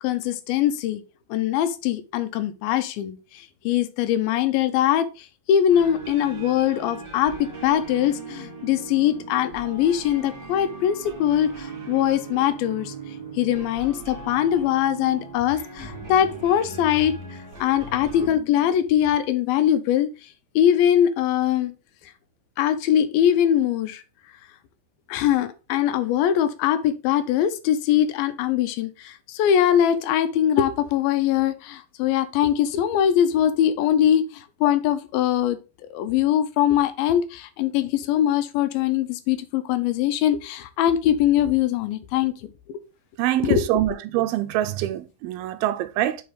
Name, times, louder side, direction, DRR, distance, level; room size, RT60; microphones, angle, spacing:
voice 1, 0.0-1.0 1.3-12.9 13.4-17.2 17.6-20.1 20.6-21.7 22.6-24.0 25.1-35.6 35.9-42.5 43.4-43.6, left 10 dB, 80° left, 2.4 m, -22 dB
sound 1, 5.7-18.3, right 4 dB, 35° right, 2.4 m, -39 dB
voice 2, 43.2-46.2, right 13 dB, 85° right, 2.4 m, -25 dB
8.5 x 4.4 x 3.7 m
omnidirectional pair, 4.5 m